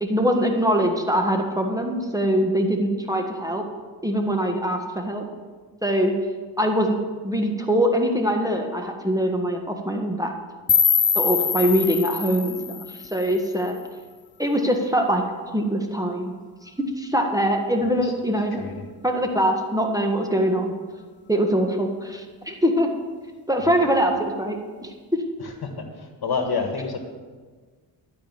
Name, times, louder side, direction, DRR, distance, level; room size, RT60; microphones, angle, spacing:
voice 1, 0.0-3.6 4.0-5.2 5.8-6.1 6.6-7.0 7.2-10.3 11.1-13.7 14.4-16.3 17.0-18.6 19.0-20.7 21.3-22.9 23.5-24.6 24.8-24.9, equal, 10° right, 3 dB, 1.6 m, -23 dB
sound 1, 10.7-13.7, left 6 dB, 25° left, 0.6 m, -23 dB
voice 2, 18.6-18.9 23.6-23.9 25.4-27.0, left 4 dB, 55° left, 5 dB, 1.7 m, -29 dB
12.0 x 5.1 x 7.3 m, 1.5 s
supercardioid pair, 45°, 46 cm